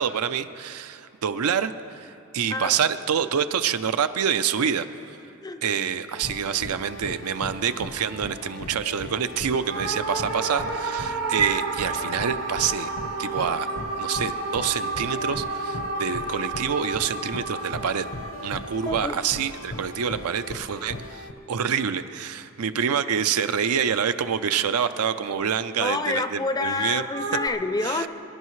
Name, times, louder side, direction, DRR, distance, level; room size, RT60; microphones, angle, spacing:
voice 1, 0.0-5.2 5.6-12.9 13.2-13.7 14.0-18.1 18.4-27.0 27.8-28.1, right 7 dB, 85° right, 11 dB, 0.5 m, -27 dB
sound 1, 6.1-21.3, left 1 dB, 70° left, 0.8 m, -39 dB
sound 2, 9.7-20.2 27.1-27.5, right 3 dB, 55° right, 0.8 m, -31 dB
voice 2, 18.9-19.2 25.8-28.1, left 3 dB, 15° left, 9 dB, 0.4 m, -27 dB
24.5 x 11.0 x 3.1 m, 2.8 s
head